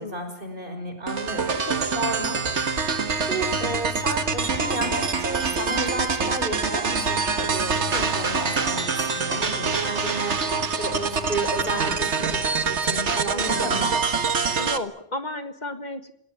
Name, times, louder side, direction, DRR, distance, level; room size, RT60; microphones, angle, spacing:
voice 1, 0.0-13.9, right 1 dB, 50° right, 6 dB, 5.9 m, -32 dB
sound 1, 1.1-14.8, right 5 dB, 85° right, 1.9 m, -25 dB
voice 2, 7.8-8.2 13.3-13.9 14.6-16.1, left 2 dB, 40° left, 9 dB, 1.6 m, -33 dB
27.5 x 18.0 x 9.3 m, 0.69 s
omnidirectional pair, 1.1 m